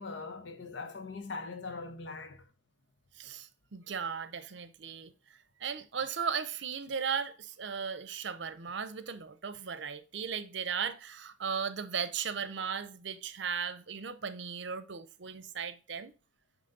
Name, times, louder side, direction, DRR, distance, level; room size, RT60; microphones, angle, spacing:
voice 1, 0.0-2.4, left 4 dB, 70° left, 0.9 m, -41 dB
voice 2, 3.2-5.1 5.6-16.1, right 6 dB, 70° right, 0.6 m, -36 dB
8.9 x 3.1 x 3.9 m
head